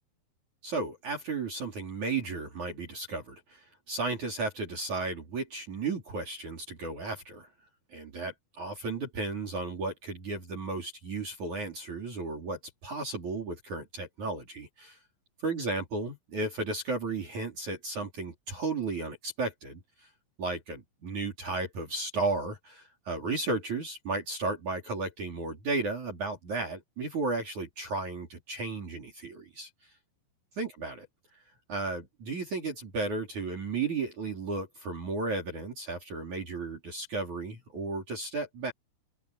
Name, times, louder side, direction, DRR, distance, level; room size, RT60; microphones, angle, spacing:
voice 1, 0.6-7.5 7.9-15.0 15.4-19.8 20.4-29.7 30.5-31.1 31.7-38.7, right 3 dB, 40° right, 4.8 m, -34 dB
open air
omnidirectional pair, 5.6 m